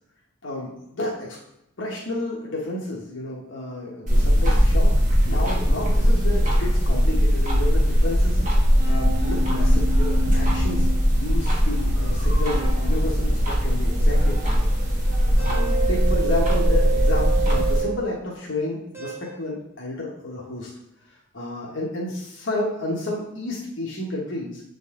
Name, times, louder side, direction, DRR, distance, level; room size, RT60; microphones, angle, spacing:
voice 1, 0.4-1.4 1.8-4.9 5.2-8.4 8.8-10.9 11.1-14.7 15.4-20.7 21.3-24.6, left 2 dB, 60° left, -4 dB, 1.1 m, -31 dB
sound 1, 4.1-17.8, equal, 35° right, 1.3 m, -20 dB
sound 2, 6.4-6.9 8.8-11.2 12.5-13.0 15.4-18.2 18.9-19.4, right 4 dB, 10° right, 1.3 m, -30 dB
7.7 x 3.9 x 3.7 m, 0.85 s
head